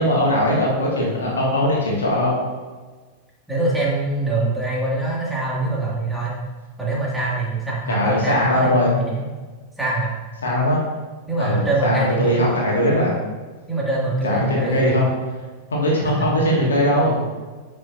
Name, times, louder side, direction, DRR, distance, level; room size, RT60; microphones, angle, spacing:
voice 1, 0.0-2.4 7.9-9.0 10.4-10.8 11.4-13.2 14.2-15.1 15.7-17.2, left 1 dB, 70° left, -3 dB, 2.0 m, -20 dB
voice 2, 3.5-6.3 6.8-9.3 9.8-10.1 11.3-12.5 13.7-15.1 16.0-16.3, right 2 dB, 5° right, -5 dB, 2.2 m, -24 dB
10.0 x 5.6 x 2.7 m, 1.3 s
figure-of-eight pair, 90°, 0 cm